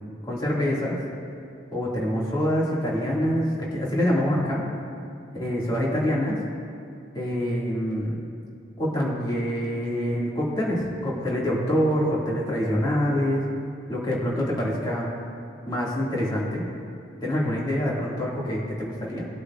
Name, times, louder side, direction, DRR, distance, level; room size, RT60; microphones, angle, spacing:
voice 1, 0.2-1.0 1.7-4.6 5.3-6.4 7.1-8.2 8.8-13.5 13.9-15.1 15.7-16.7 17.2-19.3, equal, 20° left, -5 dB, 2.0 m, -25 dB
19.0 x 8.2 x 2.4 m, 2.3 s
head